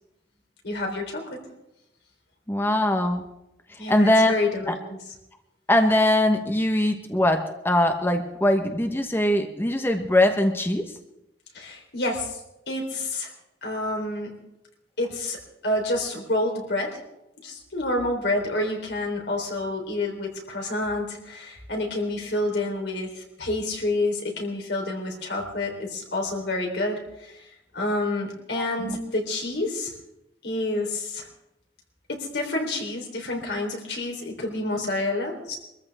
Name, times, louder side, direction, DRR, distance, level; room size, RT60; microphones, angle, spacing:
voice 1, 0.6-1.4 3.8-5.0 11.5-12.4 12.7-13.3 13.6-14.4 15.0-17.0 17.4-27.4 27.7-29.9 30.4-31.3 32.1-35.6, left 2 dB, 70° left, 1 dB, 3.9 m, -28 dB
voice 2, 2.5-3.3 3.9-4.3 4.7-4.8 5.7-10.9 28.6-29.0, left 1 dB, 15° left, 5 dB, 1.1 m, -22 dB
24.0 x 14.0 x 3.6 m, 0.86 s
head